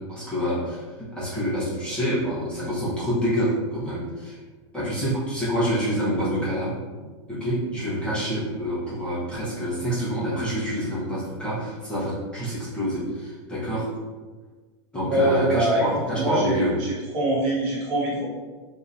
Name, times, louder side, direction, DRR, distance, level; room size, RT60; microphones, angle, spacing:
voice 1, 0.0-4.4 4.7-6.8 7.3-13.9 14.9-16.8, equal, 5° left, -10 dB, 0.9 m, -27 dB
voice 2, 15.1-15.8 16.1-18.2, right 1 dB, 40° right, -6 dB, 1.0 m, -24 dB
3.6 x 2.8 x 2.6 m, 1.4 s
supercardioid pair, 160°, 16 cm